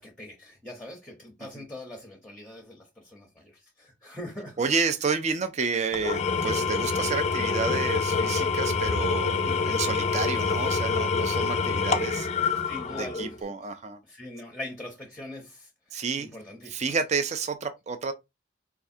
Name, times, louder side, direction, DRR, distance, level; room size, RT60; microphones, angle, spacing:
voice 1, 0.0-4.6 9.4-9.9 12.6-13.5 14.0-16.9, left 1 dB, 5° left, 0.8 m, -42 dB
voice 2, 4.6-12.3 12.9-14.0 15.9-16.3 16.7-18.1, right 5 dB, 40° right, 0.5 m, -30 dB
Engine / Tools, 5.9-13.4, left 5 dB, 35° left, 0.4 m, -26 dB
4.6 x 2.4 x 2.6 m
head